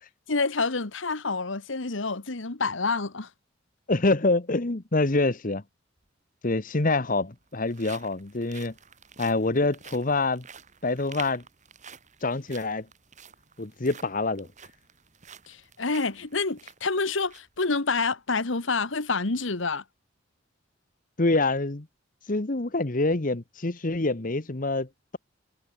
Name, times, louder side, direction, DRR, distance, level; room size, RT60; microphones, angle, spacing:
voice 1, 0.3-3.3 15.5-19.8, left 4 dB, 80° left, 1.6 m, -28 dB
voice 2, 3.9-5.6 6.4-8.7 9.2-10.4 10.8-11.4 12.2-12.9 13.6-14.5 21.2-21.9 22.3-24.9, left 2 dB, 45° left, 1.2 m, -26 dB
sound 1, 6.0-6.1 7.0-17.6 18.0-18.1 18.6-18.8, right 7 dB, 40° right, 6.2 m, -49 dB
head